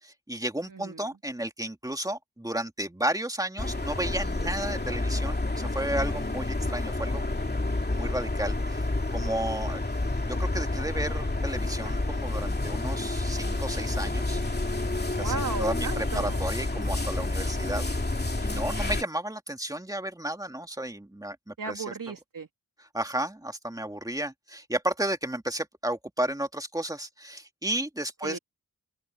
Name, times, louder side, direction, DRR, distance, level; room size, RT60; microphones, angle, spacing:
voice 1, 0.0-7.2 7.9-9.8 10.2-14.4 15.2-21.8 22.8-28.4, right 1 dB, 10° right, 2.1 m, -33 dB
voice 2, 0.7-1.1 15.2-16.4 21.6-22.5 28.2-28.4, right 4 dB, 65° right, 3.1 m, -35 dB
sound 1, 3.6-19.0, left 2 dB, 30° left, 2.8 m, -29 dB
open air
wide cardioid pair, 85°, 35 cm